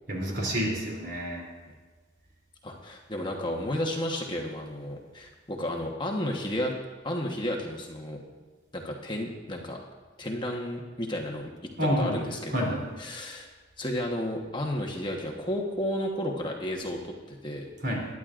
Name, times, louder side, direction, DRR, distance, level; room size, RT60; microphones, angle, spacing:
voice 1, 0.1-1.5 11.8-12.2 12.5-12.8 17.8-18.1, equal, 55° right, -2 dB, 3.1 m, -28 dB
voice 2, 2.6-6.7 7.0-8.2 8.7-9.8 10.2-11.5 11.8-13.5 13.8-17.7, left 1 dB, 25° left, 0 dB, 1.1 m, -32 dB
21.5 x 11.0 x 2.5 m, 1.4 s
head